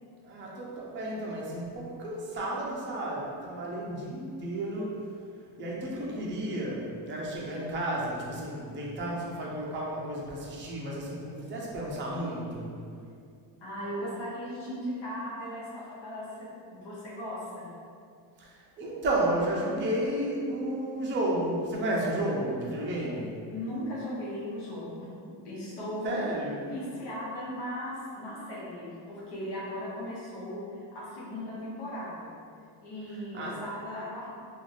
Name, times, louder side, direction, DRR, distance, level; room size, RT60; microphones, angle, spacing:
voice 1, 0.2-5.0 5.6-12.7 18.4-23.4 26.0-26.7 33.3-33.6, right 1 dB, 25° right, -4 dB, 0.5 m, -32 dB
voice 2, 13.6-17.7 23.5-25.1 25.4-26.2 26.6-32.3 32.8-34.4, equal, 60° left, -8 dB, 1.1 m, -37 dB
2.5 x 2.4 x 3.2 m, 2.3 s
cardioid pair, 100°, 47 cm